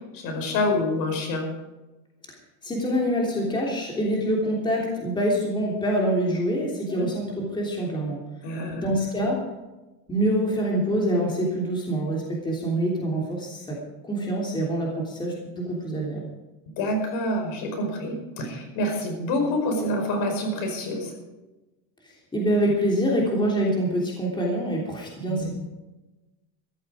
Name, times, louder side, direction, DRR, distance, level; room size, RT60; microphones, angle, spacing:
voice 1, 0.0-1.5 6.9-7.1 8.4-8.9 16.8-21.1 25.3-25.5, left 1 dB, 55° left, 4 dB, 5.2 m, -27 dB
voice 2, 2.6-8.2 8.7-9.4 10.1-13.8 14.0-16.2 22.0-25.5, equal, 10° left, -2 dB, 3.2 m, -25 dB
14.5 x 13.5 x 5.0 m, 1.1 s
cardioid pair, 150°, 39 cm